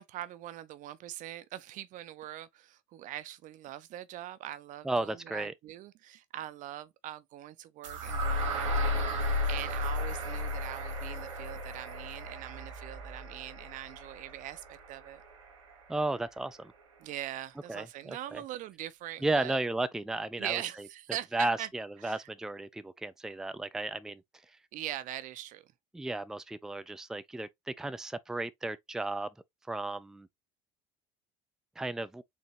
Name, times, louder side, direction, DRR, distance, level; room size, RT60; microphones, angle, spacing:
voice 1, 0.0-15.2 17.0-19.6 20.4-21.7 22.0-22.2 24.7-25.7, right 13 dB, 55° right, 0.6 m, -42 dB
voice 2, 4.8-5.5 15.9-16.7 17.7-18.4 19.2-20.9 21.3-24.2 25.9-29.3 29.7-30.3 31.8-32.2, right 2 dB, 5° right, 0.4 m, -34 dB
sound 1, 7.8-15.8, left 1 dB, 85° right, 1.4 m, -34 dB
4.3 x 2.9 x 2.9 m
hypercardioid pair, 70°, 16 cm